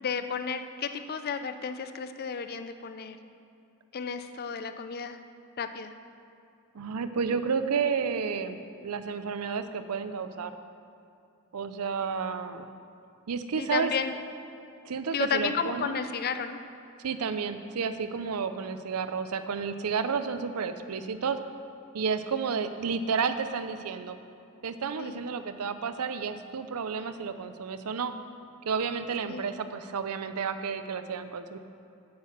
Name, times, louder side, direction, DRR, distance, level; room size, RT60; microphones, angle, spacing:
voice 1, 0.0-3.2 3.9-5.2 5.6-5.9 13.6-14.2 15.1-16.6 25.0-25.2 29.3-29.5, left 6 dB, 45° left, 9 dB, 0.5 m, -32 dB
voice 2, 6.7-10.5 11.5-12.7 13.3-13.9 14.9-16.0 17.0-21.4 21.9-24.2 24.6-28.1 28.7-31.6, right 5 dB, 90° right, 10 dB, 0.5 m, -31 dB
8.6 x 5.8 x 7.3 m, 2.6 s
head